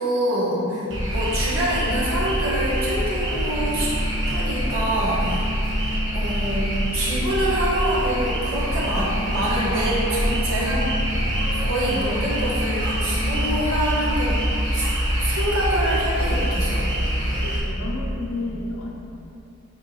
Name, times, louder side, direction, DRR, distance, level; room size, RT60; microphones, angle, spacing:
voice 1, 0.0-0.8 1.1-3.9 4.3-5.4 6.1-10.8 11.5-14.4 14.7-14.9 15.2-16.9 18.4-18.5, right 1 dB, 80° right, -6 dB, 1.5 m, -26 dB
voice 2, 0.5-1.0 17.4-18.9, left 2 dB, 80° left, -2 dB, 1.0 m, -32 dB
sound 1, 0.9-17.6, equal, 55° right, 1.3 m, -24 dB
6.5 x 4.6 x 3.3 m, 2.7 s
head